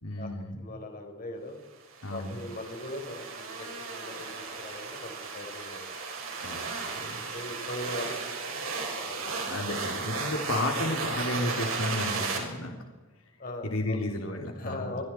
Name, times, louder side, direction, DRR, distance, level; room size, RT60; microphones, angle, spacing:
voice 1, 0.0-0.6 2.0-2.4 6.4-6.7 7.0-7.2 9.2-12.7 13.6-14.9, left 1 dB, 80° left, 2 dB, 3.5 m, -33 dB
voice 2, 0.6-1.6 2.1-5.9 6.9-9.4 10.1-10.3 13.4-14.0 14.6-15.0, left 1 dB, 45° left, 4 dB, 4.7 m, -40 dB
sound 1, 1.9-12.4, right 4 dB, 80° right, 6.6 m, -35 dB
28.5 x 25.5 x 4.7 m, 1.3 s
head